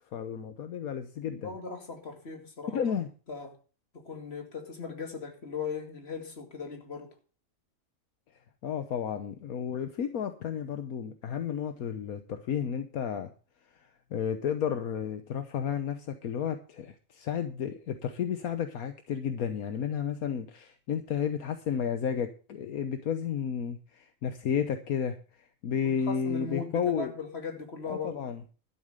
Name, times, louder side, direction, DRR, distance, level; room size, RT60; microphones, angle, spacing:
voice 1, 0.1-1.5 2.7-3.1 8.6-13.3 14.1-27.1 27.9-28.4, left 7 dB, 75° left, 1.4 m, -32 dB
voice 2, 1.2-2.8 3.3-3.6 3.9-7.2 25.8-28.2, left 5 dB, 45° left, 2.6 m, -39 dB
12.5 x 7.5 x 6.6 m
omnidirectional pair, 1.6 m